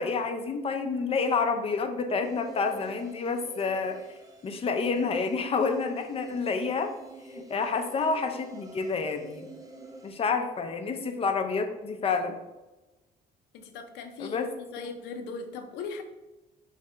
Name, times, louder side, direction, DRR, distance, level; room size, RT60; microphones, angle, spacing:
voice 1, 0.0-4.1 4.4-6.9 7.3-9.5 10.0-12.3 14.2-14.5, left 4 dB, 35° left, 6 dB, 0.6 m, -29 dB
sound 1, 2.2-10.1, right 2 dB, 20° right, 0.7 m, -49 dB
voice 2, 13.5-14.4 14.7-16.0, left 4 dB, 85° left, 6 dB, 0.6 m, -38 dB
4.3 x 3.3 x 3.7 m, 1.1 s
cardioid pair, 110°, 17 cm